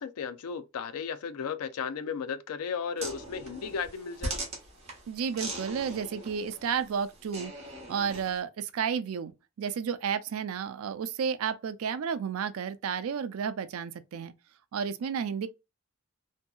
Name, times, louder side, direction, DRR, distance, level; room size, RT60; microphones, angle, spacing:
voice 1, 0.0-4.3, left 6 dB, 90° left, 0.4 m, -35 dB
sound 1, 3.0-8.4, right 2 dB, 30° right, 1.0 m, -40 dB
voice 2, 5.1-7.5 7.9-14.3 14.7-15.5, right 7 dB, 75° right, 0.4 m, -32 dB
2.7 x 2.6 x 2.3 m
head